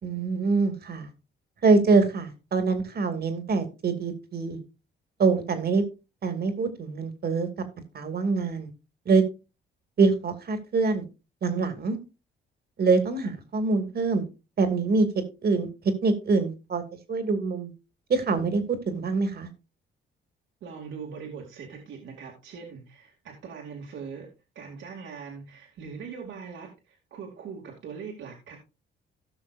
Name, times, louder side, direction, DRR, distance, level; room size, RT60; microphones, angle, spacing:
voice 1, 0.0-1.1 1.6-4.6 5.2-5.8 6.2-7.5 7.9-8.7 9.1-9.2 10.0-11.0 11.4-12.0 12.8-14.2 14.6-15.1 15.4-15.7 16.0-16.8 17.1-17.7 18.1-19.5, right 4 dB, 50° right, 2.5 m, -24 dB
voice 2, 20.6-24.3 24.5-28.6, right 6 dB, 75° right, 2.7 m, -41 dB
17.5 x 6.1 x 2.6 m
cardioid pair, 90°, 20 cm